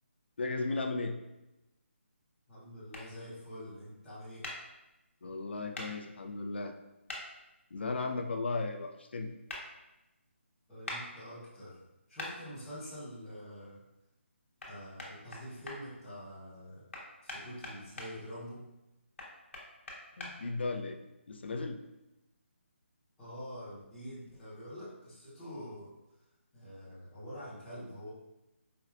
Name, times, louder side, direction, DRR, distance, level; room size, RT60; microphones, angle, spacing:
voice 1, 0.4-1.2 5.2-6.7 7.7-9.3 20.2-21.0 21.3-21.8, left 3 dB, 55° left, 5 dB, 0.3 m, -35 dB
voice 2, 2.5-4.5 10.7-11.8 12.1-13.8 14.7-16.9 17.2-18.6 23.2-25.9 26.5-28.1, equal, ahead, -20 dB, 0.8 m, -46 dB
sound 1, 2.9-3.1 4.4-4.6 5.7-5.9 7.1-7.2 9.5-9.6 10.9-11.0 12.2-12.3 14.6-14.7 15.0-15.8 16.9-18.1 19.2-20.3, left 2 dB, 70° left, 0.9 m, -41 dB
4.4 x 2.3 x 2.3 m, 0.95 s
hypercardioid pair, 180°, 7 cm